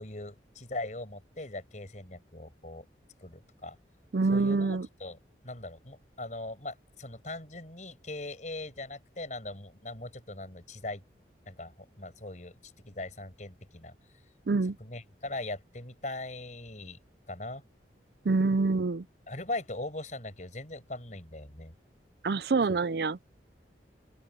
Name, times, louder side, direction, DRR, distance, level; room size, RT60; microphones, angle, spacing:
voice 1, 0.0-2.9 3.2-3.8 4.3-5.2 5.4-11.0 11.5-14.0 14.8-17.0 17.3-17.6 19.3-21.7, left 2 dB, 40° left, 5.7 m, -40 dB
voice 2, 4.1-4.9 14.5-14.8 18.2-19.0 22.2-23.2, right 3 dB, 60° right, 0.5 m, -26 dB
open air
head